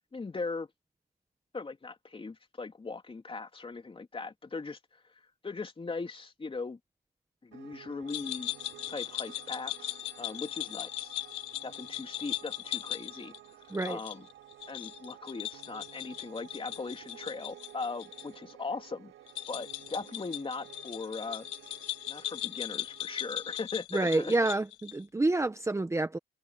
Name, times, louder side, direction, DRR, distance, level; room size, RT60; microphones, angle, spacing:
voice 1, 0.1-0.7 1.5-4.8 5.4-6.8 7.4-8.5 8.9-11.1 11.6-13.3 13.8-14.3 14.7-19.1 19.5-21.5 22.1-24.3, left 4 dB, 25° left, 3.0 m, -39 dB
Piano, 7.5-23.6, right 13 dB, 90° right, 3.8 m, -53 dB
sound 1, 8.1-18.2 18.5-18.6 19.3-25.0, left 14 dB, 85° left, 5.2 m, -39 dB
voice 2, 23.9-26.2, right 2 dB, 15° right, 1.2 m, -28 dB
cardioid pair, 90°, 20 cm